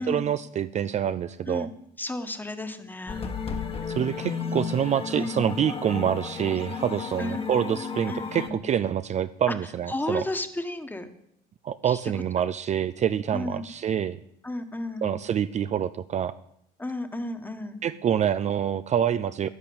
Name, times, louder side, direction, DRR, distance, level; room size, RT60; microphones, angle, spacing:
voice 1, 0.0-1.7 3.9-10.2 11.6-14.2 15.0-16.4 17.8-19.5, right 9 dB, 45° right, 13 dB, 0.5 m, -26 dB
voice 2, 2.0-3.3 5.1-5.5 7.2-7.5 8.1-8.6 9.9-11.1 11.8-12.1 13.3-13.7 14.4-15.1 16.8-17.8, left 2 dB, 10° left, 8 dB, 1.5 m, -33 dB
sound 1, 3.1-8.5, left 6 dB, 35° left, 1.5 m, -33 dB
11.0 x 10.5 x 8.7 m, 0.76 s
cardioid pair, 110°, 17 cm